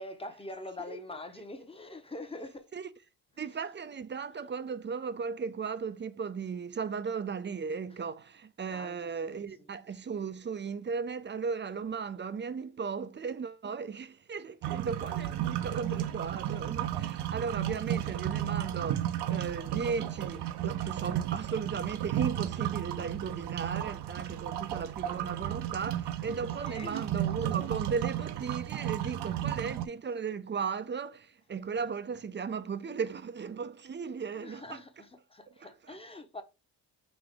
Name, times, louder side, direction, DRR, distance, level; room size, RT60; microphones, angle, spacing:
voice 1, 0.0-2.7 8.7-9.4 26.6-27.0 34.4-36.4, left 2 dB, 15° left, 0.9 m, -44 dB
voice 2, 3.4-34.8 35.5-36.0, right 5 dB, 25° right, 0.5 m, -36 dB
Water Draining, 14.6-29.8, right 12 dB, 65° right, 0.6 m, -34 dB
5.1 x 2.9 x 3.6 m
cardioid pair, 80°, 44 cm